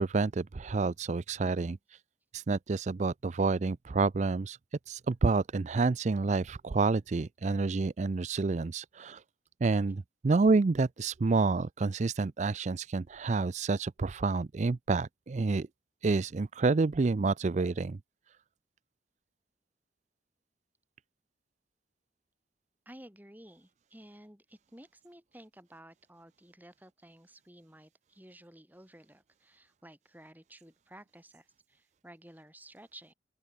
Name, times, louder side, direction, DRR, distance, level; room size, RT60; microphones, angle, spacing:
voice 1, 0.0-2.0 2.3-4.6 4.9-9.2 9.6-15.7 16.0-18.0, right 3 dB, 40° right, 0.4 m, -29 dB
voice 2, 22.8-33.1, right 1 dB, 10° right, 5.0 m, -54 dB
open air
head